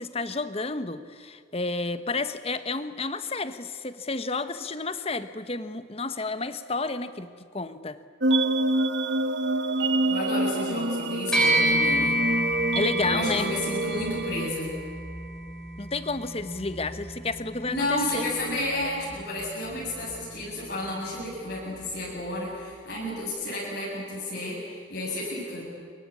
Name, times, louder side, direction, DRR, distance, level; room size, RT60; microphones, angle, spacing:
voice 1, 0.0-7.3 7.5-8.0 12.7-13.5 15.8-18.3, left 3 dB, 30° left, 12 dB, 1.1 m, -31 dB
sound 1, 8.2-14.5, right 2 dB, 65° right, 1.4 m, -27 dB
voice 2, 10.1-12.2 13.0-14.7 17.7-25.7, left 1 dB, 55° left, -5 dB, 7.7 m, -31 dB
sound 2, 11.3-20.9, right 1 dB, 5° left, 5.7 m, -30 dB
26.0 x 24.0 x 8.6 m, 2.2 s
head